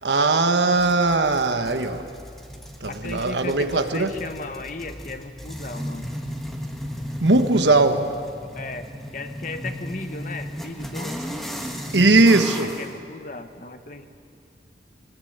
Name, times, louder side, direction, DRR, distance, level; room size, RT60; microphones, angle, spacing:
voice 1, 0.0-2.1 2.8-4.1 7.2-8.1 11.9-12.7, right 2 dB, 85° right, 1.4 m, -19 dB
sound 1, 0.8-12.9, equal, ahead, 1.6 m, -35 dB
voice 2, 2.8-6.1 8.5-8.9 9.1-11.2 12.6-14.1, left 3 dB, 45° left, 1.2 m, -36 dB
24.0 x 20.0 x 8.1 m
head